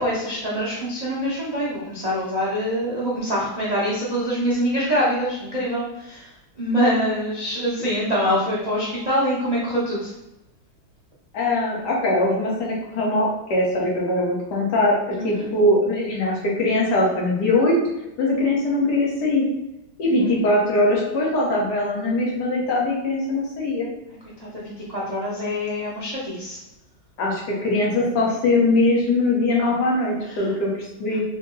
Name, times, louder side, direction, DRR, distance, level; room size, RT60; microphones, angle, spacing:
voice 1, 0.0-6.3 6.6-10.1 15.1-15.5 20.2-20.3 24.4-26.6 30.2-30.4, equal, 85° right, -7 dB, 0.3 m, -25 dB
voice 2, 11.3-17.7 18.2-19.4 20.0-23.9 27.2-31.2, left 2 dB, 60° left, -3 dB, 1.5 m, -21 dB
4.1 x 2.1 x 3.7 m, 0.92 s
omnidirectional pair, 2.1 m